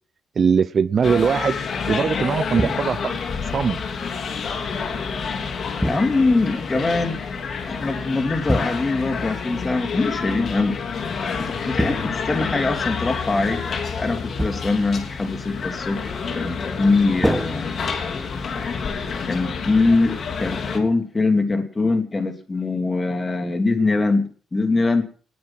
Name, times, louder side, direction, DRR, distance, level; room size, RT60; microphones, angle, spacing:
voice 1, 0.4-1.6 1.9-3.2 3.5-3.8 6.7-7.1, right 6 dB, 45° right, 17 dB, 0.6 m, -21 dB
sound 1, 1.0-20.8, left 5 dB, 50° left, 3.0 m, -28 dB
sound 2, 2.6-3.2 5.8-6.5 8.5-9.2 11.8-12.7 14.4-14.9 17.2-18.3, equal, 5° right, 1.4 m, -27 dB
voice 2, 5.8-7.2 7.7-10.8 11.4-13.6 14.0-17.7 18.2-18.3 19.3-25.0, left 3 dB, 25° left, 6 dB, 2.9 m, -22 dB
20.0 x 9.5 x 5.8 m, 0.44 s
cardioid pair, 90°, 0 cm